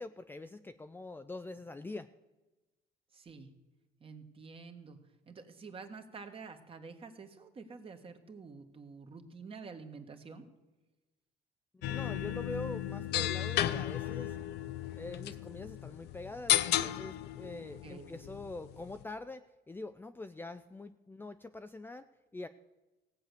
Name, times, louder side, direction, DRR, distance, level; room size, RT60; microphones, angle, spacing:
voice 1, 0.0-2.1 11.9-14.4 15.0-22.1 22.3-22.5, left 2 dB, 10° left, 9 dB, 0.5 m, -44 dB
voice 2, 3.1-3.5 4.0-5.0 5.3-10.5 17.8-18.1, right 4 dB, 35° right, 6 dB, 1.5 m, -48 dB
sound 1, 11.8-19.0, left 13 dB, 75° left, 0.6 m, -34 dB
16.5 x 7.8 x 6.9 m, 1.1 s
cardioid pair, 110°, 17 cm